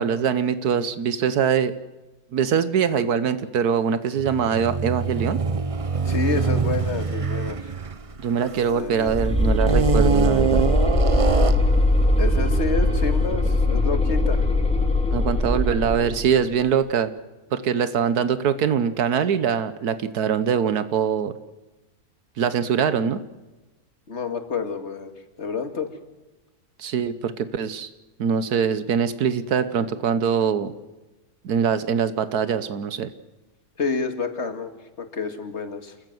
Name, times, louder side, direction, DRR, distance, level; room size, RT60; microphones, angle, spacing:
voice 1, 0.0-1.7 2.3-5.4 8.2-10.7 15.1-17.1 17.5-21.3 22.4-23.2 26.8-27.9 28.2-30.7 31.4-33.1, right 7 dB, 80° right, 13 dB, 1.5 m, -23 dB
sound 1, 4.2-9.0 9.6-11.8, right 5 dB, 30° right, 0.6 m, -25 dB
voice 2, 6.0-7.7 8.7-9.1 12.2-14.5 24.1-25.1 25.4-25.9 33.8-35.9, left 4 dB, 45° left, 8 dB, 2.2 m, -29 dB
sound 2, 9.0-16.3, left 1 dB, 5° left, 2.3 m, -20 dB
28.0 x 15.0 x 7.8 m, 1.1 s
omnidirectional pair, 1.6 m